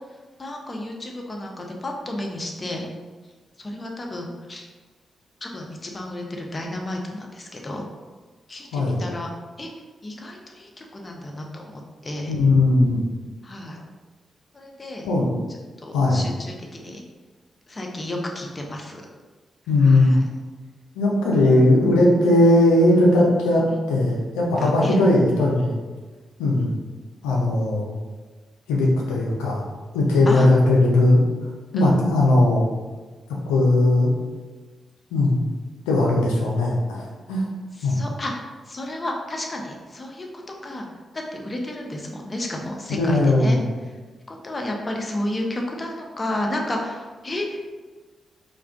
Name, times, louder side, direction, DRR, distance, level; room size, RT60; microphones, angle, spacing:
voice 1, 0.4-2.9 3.6-4.7 5.4-7.8 8.5-9.3 9.6-9.7 10.0-12.3 13.4-13.8 14.5-15.1 15.8-17.0 17.7-19.1 19.8-20.2 23.7-23.8 24.6-25.0 26.6-26.7 30.3-30.5 31.7-32.1 37.7-40.9 41.1-43.6 44.3-47.7, left 1 dB, 35° left, 1 dB, 0.6 m, -32 dB
voice 2, 12.3-13.0 15.0-15.3 15.9-16.3 19.7-20.1 21.0-25.8 26.4-26.7 27.2-27.9 28.7-29.6 29.9-31.2 31.7-32.7 33.5-34.1 35.1-35.4 35.9-37.4 37.8-38.0 42.9-43.6, left 2 dB, 90° left, -2 dB, 0.5 m, -18 dB
2.3 x 2.3 x 3.4 m, 1.3 s
hypercardioid pair, 40°, 0 cm